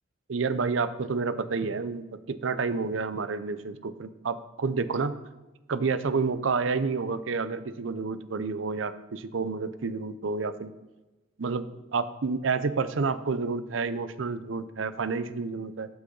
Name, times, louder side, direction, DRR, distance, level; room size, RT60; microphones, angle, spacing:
voice 1, 0.3-5.2 5.7-10.7 11.4-11.6 11.9-15.9, right 4 dB, 85° right, 13 dB, 0.6 m, -29 dB
12.5 x 6.6 x 3.9 m, 1.1 s
head